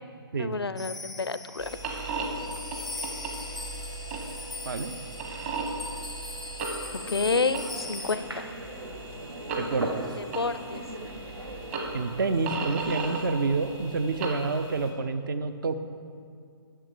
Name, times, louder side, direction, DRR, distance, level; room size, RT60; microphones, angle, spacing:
voice 1, 0.4-1.7 7.1-8.4 10.2-10.8 12.6-12.7, left 4 dB, 85° left, 14 dB, 0.5 m, -29 dB
sound 1, 0.8-8.2, left 3 dB, ahead, 0.4 m, -40 dB
sound 2, 1.6-14.9, right 3 dB, 35° right, 1.4 m, -36 dB
voice 2, 4.7-5.0 9.6-10.0 11.9-15.8, right 4 dB, 60° right, 10 dB, 0.7 m, -28 dB
sound 3, 6.9-12.0, right 1 dB, 90° right, 1.2 m, -39 dB
11.0 x 6.8 x 4.9 m, 2.3 s
figure-of-eight pair, 130°, 13 cm